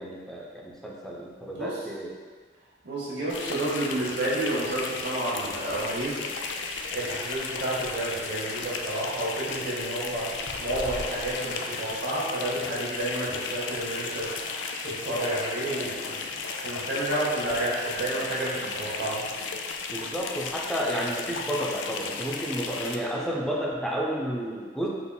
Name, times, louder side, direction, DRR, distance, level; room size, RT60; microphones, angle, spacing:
voice 1, 0.0-2.1 18.6-18.7 19.9-24.9, equal, 5° left, -4 dB, 0.4 m, -31 dB
voice 2, 2.8-6.2 6.9-16.2 16.6-19.3, right 1 dB, 65° right, -7 dB, 0.9 m, -30 dB
sound 1, 3.3-23.0, left 4 dB, 85° left, 0.3 m, -35 dB
sound 2, 5.7-19.5, equal, 30° left, 1.1 m, -46 dB
Water / Splash splatter, 10.3-12.7 16.0-16.1 16.3-17.1 18.2-18.3, equal, 25° right, 0.7 m, -49 dB
3.8 x 3.5 x 2.2 m, 1.5 s
head